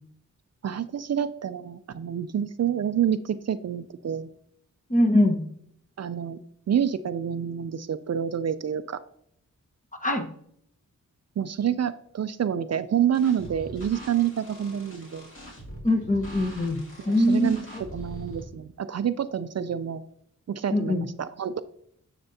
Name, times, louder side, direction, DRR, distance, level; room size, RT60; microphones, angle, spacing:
voice 1, 0.6-4.3 6.0-6.4 6.7-9.0 11.4-15.3 17.0-20.0 20.5-21.6, right 9 dB, 55° right, 12 dB, 0.4 m, -28 dB
voice 2, 4.9-5.4 10.0-10.3 15.8-17.6 20.7-21.0, left 1 dB, 25° left, 4 dB, 1.1 m, -22 dB
sound 1, 13.1-18.4, equal, 40° left, 2.2 m, -43 dB
10.5 x 6.7 x 2.8 m, 0.68 s
wide cardioid pair, 120°, 31 cm